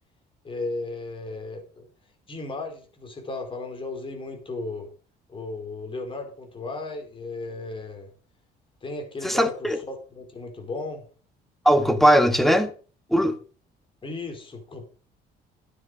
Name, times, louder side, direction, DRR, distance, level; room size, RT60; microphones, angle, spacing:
voice 1, 0.4-1.9 2.3-4.9 5.3-8.1 8.8-11.0 14.0-14.9, left 3 dB, 30° left, 4.7 m, -35 dB
voice 2, 9.2-9.8 11.7-12.7 13.1-13.3, equal, ahead, 1.8 m, -19 dB
12.0 x 9.8 x 5.2 m
cardioid pair, 110°, 17 cm